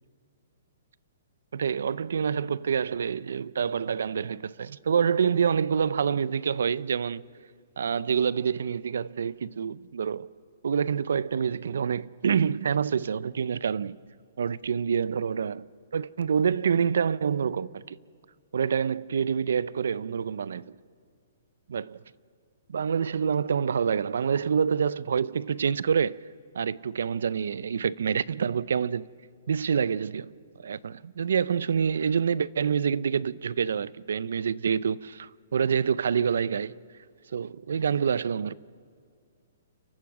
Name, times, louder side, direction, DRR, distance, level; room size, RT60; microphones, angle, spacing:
voice 1, 1.5-7.2 7.8-10.3 10.6-14.0 14.4-15.7 15.9-18.0 18.5-20.8 21.7-22.0 22.7-26.2 26.5-29.1 29.5-30.3 30.6-36.8 37.3-38.5, right 7 dB, 80° right, 0.5 m, -27 dB
30.0 x 14.0 x 6.2 m
hypercardioid pair, 160°, 0 cm